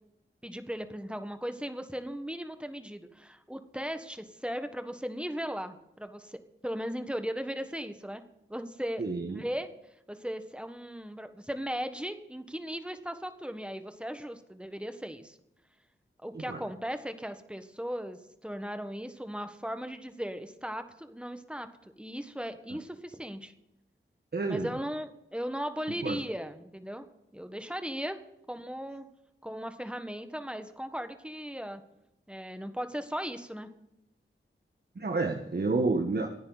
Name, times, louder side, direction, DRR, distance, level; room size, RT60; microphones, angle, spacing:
voice 1, 0.4-8.2 8.5-9.7 10.1-15.4 16.2-23.5 24.5-27.0 27.3-28.2 28.5-29.1 29.4-31.8 32.3-33.7, equal, 5° right, 8 dB, 1.5 m, -37 dB
voice 2, 9.0-9.4 16.5-16.6 24.3-24.7 26.0-26.2 35.0-36.3, right 3 dB, 50° right, 5 dB, 1.4 m, -29 dB
25.5 x 9.6 x 4.1 m, 0.86 s
wide cardioid pair, 65°, 21 cm